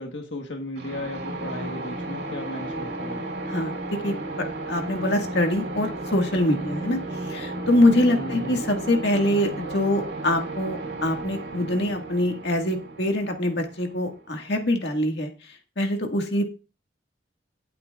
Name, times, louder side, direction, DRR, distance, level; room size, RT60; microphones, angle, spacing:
voice 1, 0.0-3.2 8.1-8.6, left 1 dB, 90° left, 2 dB, 1.5 m, -35 dB
sound 1, 0.8-14.4, right 2 dB, 75° right, 3.3 m, -34 dB
voice 2, 3.5-4.1 4.7-7.0 7.3-15.3 15.8-16.4, left 1 dB, 65° left, 3 dB, 1.9 m, -24 dB
17.5 x 8.4 x 2.5 m, 0.32 s
head